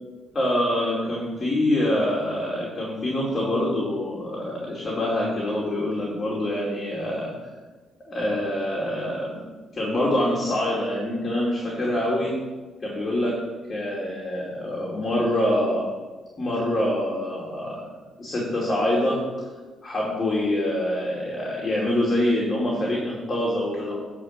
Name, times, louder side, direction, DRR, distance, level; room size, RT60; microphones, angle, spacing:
voice 1, 0.3-7.3 8.1-9.4 9.7-12.3 12.8-13.4 13.7-15.9 16.4-17.9 18.2-19.2 19.8-24.0, left 1 dB, 35° left, -4 dB, 2.6 m, -25 dB
11.5 x 4.5 x 7.3 m, 1.3 s
cardioid pair, 90°, 0 cm